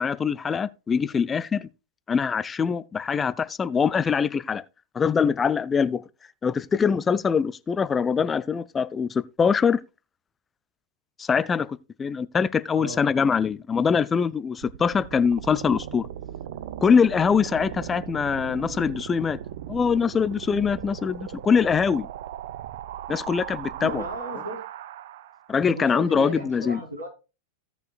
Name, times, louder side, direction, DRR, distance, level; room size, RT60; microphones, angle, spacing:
voice 1, 0.0-1.7 2.1-4.6 4.9-6.0 6.4-9.8 11.2-11.7 12.0-16.1 16.8-19.4 19.7-22.1 23.1-24.0 25.5-26.8, left 6 dB, 20° left, 0.4 m, -23 dB
sound 1, 14.6-25.5, right 11 dB, 55° right, 0.6 m, -38 dB
voice 2, 23.8-24.6 25.7-27.1, right 1 dB, 85° right, 3.3 m, -35 dB
16.5 x 5.7 x 2.4 m
figure-of-eight pair, 90°, 0 cm